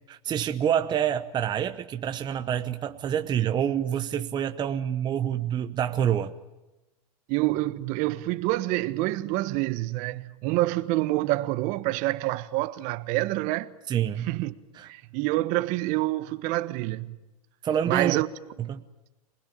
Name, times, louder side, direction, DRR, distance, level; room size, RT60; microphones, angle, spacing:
voice 1, 0.1-6.3 13.9-14.3 14.8-14.9 17.6-18.2 18.7-18.8, right 9 dB, 25° right, 1.0 m, -27 dB
voice 2, 7.3-13.7 14.2-14.5 14.8-17.2 17.9-18.3, right 18 dB, 45° right, 1.2 m, -27 dB
26.0 x 20.0 x 8.8 m
hypercardioid pair, 125°, 19 cm